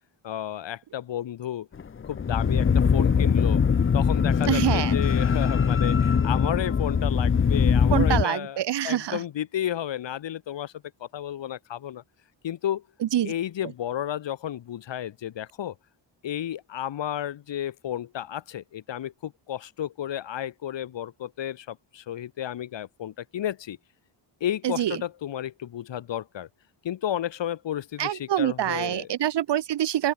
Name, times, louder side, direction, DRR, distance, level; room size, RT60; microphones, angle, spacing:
voice 1, 0.2-1.7 2.1-3.6 3.9-8.6 8.8-10.7 11.0-12.0 12.4-12.8 13.2-15.8 16.2-23.8 24.4-26.5 26.8-29.1, left 11 dB, 70° left, 2.0 m, -32 dB
sound 1, 1.8-8.2, left 6 dB, 25° left, 0.8 m, -22 dB
voice 2, 4.5-4.9 7.9-9.2 13.0-13.3 24.6-25.0 28.0-30.1, right 11 dB, 65° right, 1.2 m, -25 dB
open air
wide cardioid pair, 140°, 46 cm